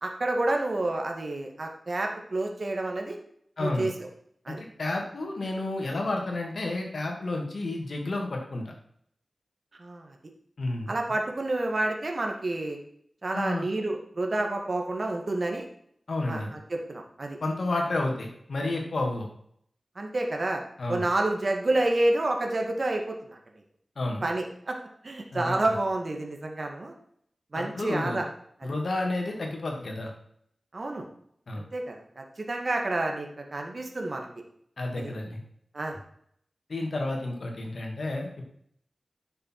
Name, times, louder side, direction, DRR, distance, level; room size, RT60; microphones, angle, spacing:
voice 1, 0.0-3.2 3.6-4.1 4.5-4.6 9.8-10.2 10.9-12.8 13.2-15.7 16.3-17.4 20.0-20.6 20.9-23.4 24.2-24.8 25.0-26.9 27.5-28.3 28.6-28.7 30.7-31.1 31.6-34.3 35.0-35.1 35.7-36.0, right 2 dB, 55° right, 2 dB, 1.9 m, -29 dB
voice 2, 3.6-3.9 4.5-8.7 10.6-10.9 13.3-13.6 16.1-16.5 17.4-19.3 20.8-21.0 24.0-24.2 25.3-25.5 27.5-28.3 28.6-30.1 31.5-31.6 34.8-35.4 36.7-38.4, left 2 dB, 75° left, 1 dB, 2.5 m, -31 dB
10.5 x 6.8 x 4.8 m, 0.68 s
wide cardioid pair, 75°, 0 cm